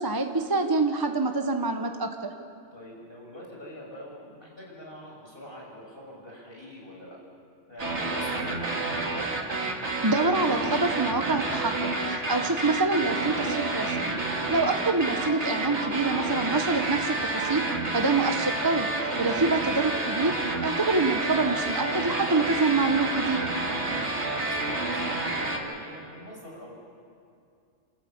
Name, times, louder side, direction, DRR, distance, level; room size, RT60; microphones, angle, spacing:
voice 1, 0.0-2.3 9.8-14.1 14.5-17.6 17.9-18.9 19.2-20.3 20.6-23.5, right 3 dB, 20° right, 5 dB, 0.8 m, -26 dB
voice 2, 2.7-7.2 7.7-9.0 23.9-26.8, equal, 50° left, -3 dB, 6.1 m, -44 dB
sound 1, 7.8-25.6, right 2 dB, 70° right, 2.4 m, -29 dB
27.5 x 13.5 x 8.7 m, 2.4 s
omnidirectional pair, 1.2 m